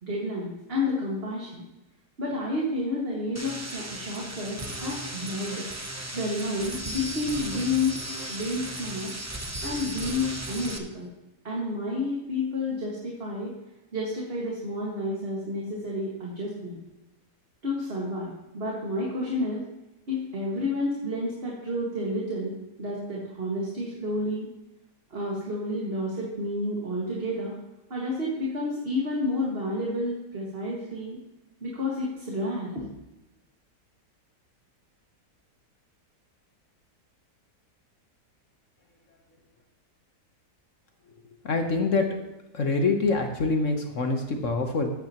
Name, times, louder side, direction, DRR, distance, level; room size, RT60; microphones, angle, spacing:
voice 1, 0.0-1.7 2.2-5.6 6.1-8.0 8.3-9.1 9.6-11.1 11.4-13.5 13.9-16.8 17.6-19.6 20.1-22.5 22.8-24.5 25.1-27.5 27.9-31.2 31.6-32.8, left 1 dB, 35° right, -4 dB, 2.1 m, -30 dB
sound 1, 3.3-10.8, right 1 dB, 15° right, 0.5 m, -36 dB
voice 2, 41.4-42.1 42.5-44.9, left 3 dB, 50° left, 4 dB, 1.3 m, -25 dB
14.5 x 9.8 x 3.0 m, 0.97 s
omnidirectional pair, 1.8 m